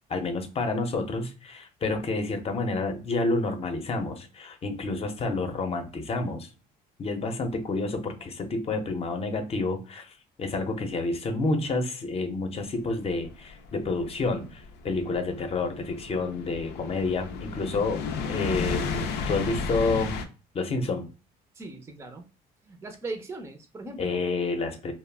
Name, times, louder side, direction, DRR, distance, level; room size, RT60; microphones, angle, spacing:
voice 1, 0.1-6.5 7.0-18.0 18.3-20.2 20.5-21.1 24.0-24.9, left 3 dB, 35° left, 6 dB, 0.7 m, -29 dB
sound 1, 13.2-20.2, left 5 dB, 85° left, 0.5 m, -33 dB
voice 2, 21.6-22.3 22.6-24.2, right 2 dB, 15° right, 6 dB, 0.5 m, -39 dB
2.3 x 2.0 x 3.3 m, 0.34 s
cardioid pair, 110°, 17 cm